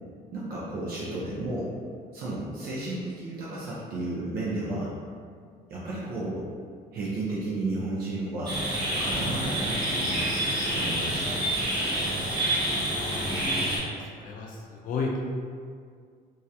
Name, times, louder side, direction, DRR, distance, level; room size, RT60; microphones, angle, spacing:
voice 1, 0.3-1.7 2.1-4.9 5.7-6.5 6.9-8.6 9.0-10.3 10.7-11.5, right 2 dB, 65° right, -7 dB, 0.5 m, -33 dB
sound 1, 8.5-13.8, right 1 dB, 25° right, 0.8 m, -28 dB
voice 2, 12.9-13.7 14.1-15.2, left 4 dB, 55° left, -1 dB, 0.4 m, -34 dB
2.4 x 2.0 x 2.7 m, 2.1 s
cardioid pair, 110°, 17 cm